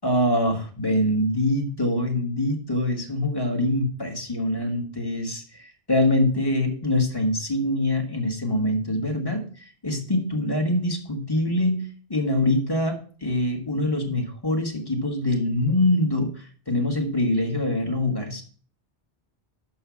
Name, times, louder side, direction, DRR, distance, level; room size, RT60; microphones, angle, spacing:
voice 1, 0.0-9.4 9.8-11.8 12.1-18.4, left 1 dB, 20° left, 3 dB, 1.5 m, -24 dB
6.3 x 5.5 x 7.1 m, 0.43 s
omnidirectional pair, 1.1 m